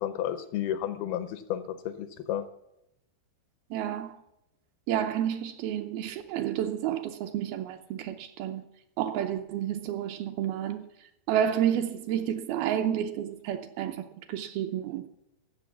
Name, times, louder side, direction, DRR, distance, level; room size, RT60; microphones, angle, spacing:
voice 1, 0.0-2.4, left 11 dB, 75° left, 2.5 m, -32 dB
voice 2, 3.7-4.2 4.9-8.6 9.0-10.8 11.3-15.0, right 10 dB, 75° right, 2.4 m, -30 dB
15.0 x 6.7 x 7.1 m
omnidirectional pair, 4.7 m